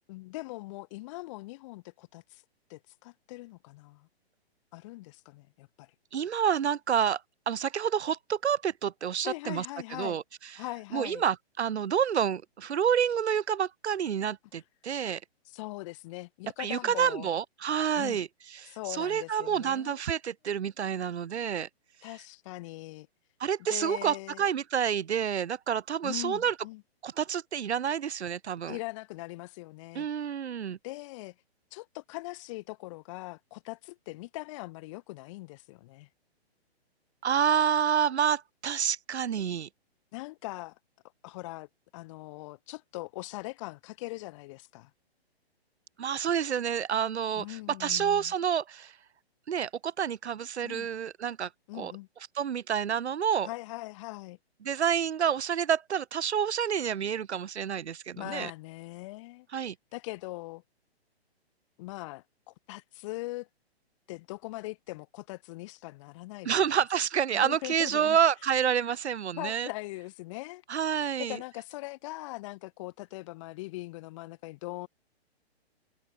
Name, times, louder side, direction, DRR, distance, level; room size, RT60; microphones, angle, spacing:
voice 1, 0.1-2.4 2.7-4.1 4.7-5.9 9.2-10.2 10.6-11.2 15.5-17.3 17.9-18.2 18.7-20.0 22.0-23.1 23.7-24.5 26.0-26.8 28.7-30.1 30.8-31.3 31.7-36.1 40.1-40.7 41.2-41.7 41.9-44.9 47.4-48.3 50.6-50.9 51.7-52.1 53.4-54.4 58.2-59.5 59.9-60.6 61.8-63.5 64.1-66.7 67.3-68.2 69.4-70.6 71.2-74.9, left 21 dB, 30° left, 2.5 m, -41 dB
voice 2, 6.1-7.2 7.5-10.2 10.9-15.2 16.6-18.3 18.5-21.7 23.4-26.5 27.0-28.8 29.9-30.8 37.2-39.7 46.0-48.9 49.5-51.9 52.4-53.5 54.6-58.5 59.5-59.7 66.4-69.7 70.7-71.4, right 8 dB, 90° right, 1.1 m, -28 dB
hypercardioid pair, 160°, 32 cm